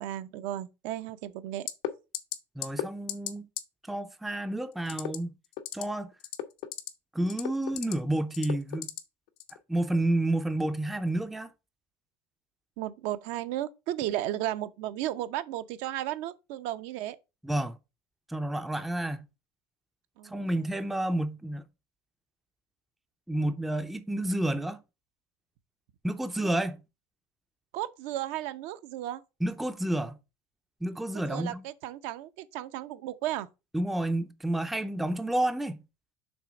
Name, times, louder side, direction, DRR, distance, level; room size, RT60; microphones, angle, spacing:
voice 1, 0.0-1.7 12.8-17.2 20.2-20.8 26.4-26.5 27.7-29.2 31.3-33.5, right 13 dB, 70° right, 0.7 m, -34 dB
sound 1, 1.7-1.9 2.1-2.4 2.6-2.8 3.1-3.3 3.6-3.7 4.9-5.2 5.5-5.8 6.2-6.9 7.3-7.9 8.3-9.0 9.4-9.6, left 14 dB, 85° left, 0.9 m, -33 dB
voice 2, 2.6-3.5 3.9-5.3 5.7-6.1 7.1-8.9 9.7-11.5 17.4-17.8 18.3-19.2 20.2-21.6 23.3-24.8 26.0-26.8 29.4-30.2 30.8-31.6 33.7-35.8, right 1 dB, ahead, 0.4 m, -30 dB
6.1 x 3.4 x 5.0 m
supercardioid pair, 130°, 13 cm